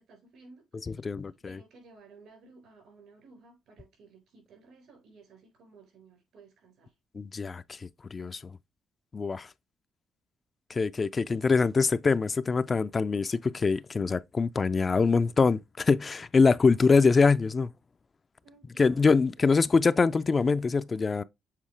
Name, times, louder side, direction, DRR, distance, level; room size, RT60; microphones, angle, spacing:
voice 1, 0.0-6.9 18.4-19.0 19.3-19.6, right 3 dB, 75° right, 4.2 m, -56 dB
voice 2, 1.0-1.6 7.1-8.4 9.1-9.5 10.7-17.7 18.8-21.2, left 4 dB, 35° left, 0.3 m, -24 dB
7.5 x 4.0 x 3.2 m
cardioid pair, 90°, 0 cm